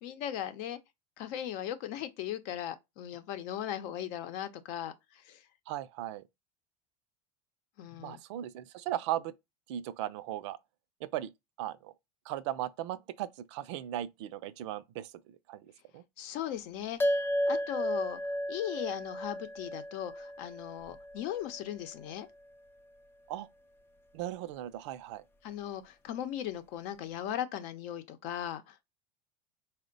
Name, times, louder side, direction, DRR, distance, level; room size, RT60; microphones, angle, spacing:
voice 1, 0.0-0.8 1.2-4.9 5.3-5.4 7.8-8.2 16.2-17.2 17.5-18.2 18.5-22.3 25.4-28.7, left 11 dB, 60° left, 0.7 m, -38 dB
voice 2, 5.7-6.2 8.0-9.3 9.7-10.6 11.0-11.3 11.6-11.9 12.3-16.0 23.3-23.5 24.1-25.2, right 13 dB, 75° right, 0.5 m, -37 dB
sound 1, 17.0-21.7, equal, 15° left, 0.4 m, -33 dB
4.3 x 2.1 x 3.8 m
supercardioid pair, 120°, 15 cm